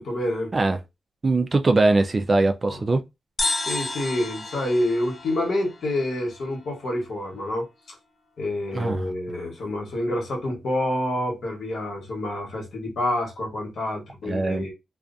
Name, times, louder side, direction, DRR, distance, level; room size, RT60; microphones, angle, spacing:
voice 1, 0.0-0.5 2.6-2.8 3.7-7.7 8.4-14.7, left 1 dB, 75° left, 1.2 m, -27 dB
voice 2, 1.2-3.0 8.7-9.0 14.2-14.7, right 2 dB, 35° right, 0.4 m, -21 dB
sound 1, 3.4-6.9, left 2 dB, 35° left, 0.6 m, -32 dB
2.4 x 2.3 x 2.5 m
cardioid pair, 80°, 0 cm